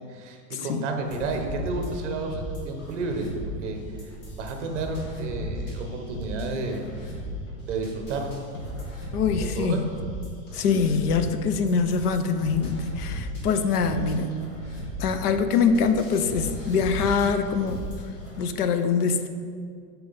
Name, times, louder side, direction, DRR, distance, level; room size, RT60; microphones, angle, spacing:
voice 1, 0.1-3.3 3.6-4.1 4.4-7.0 7.7-8.4 9.4-9.8, right 3 dB, 45° right, 4 dB, 0.9 m, -31 dB
sound 1, 1.0-18.4, equal, 45° left, 1.8 m, -36 dB
voice 2, 9.1-9.9 10.5-14.5 15.0-17.9 18.4-19.3, left 5 dB, 65° left, 9 dB, 0.6 m, -24 dB
8.4 x 4.6 x 4.0 m, 2.2 s
supercardioid pair, 175°, 50 cm